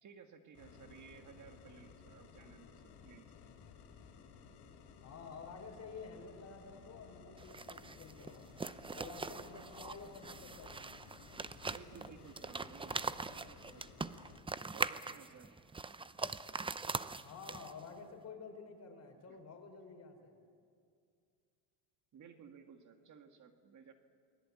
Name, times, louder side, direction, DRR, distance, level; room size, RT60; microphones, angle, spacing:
voice 1, 0.0-3.3 9.3-9.6 11.7-14.3 14.7-15.6 19.3-19.4 22.1-23.9, right 6 dB, 40° right, 6 dB, 1.9 m, -57 dB
sound 1, 0.5-14.4, left 6 dB, 65° left, 3.9 m, -57 dB
voice 2, 5.0-8.5 8.9-10.9 17.2-20.3, left 4 dB, 35° left, 3 dB, 5.1 m, -51 dB
sound 2, 7.4-17.9, right 4 dB, 10° right, 0.6 m, -42 dB
28.5 x 20.5 x 8.5 m, 2.3 s
supercardioid pair, 105°, 43 cm